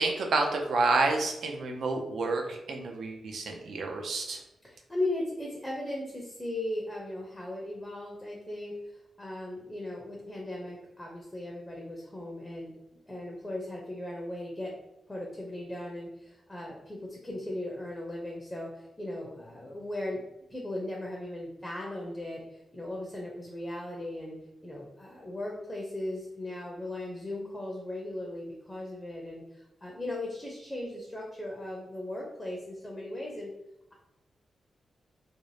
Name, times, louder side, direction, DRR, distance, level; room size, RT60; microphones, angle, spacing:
voice 1, 0.0-4.4, right 3 dB, 75° right, 2 dB, 0.5 m, -29 dB
voice 2, 4.6-8.8 9.2-12.7 13.1-14.7 15.1-20.2 20.5-24.4 24.6-33.5, left 1 dB, 10° left, -2 dB, 0.5 m, -37 dB
2.5 x 2.0 x 3.1 m, 0.87 s
wide cardioid pair, 135°, 0 cm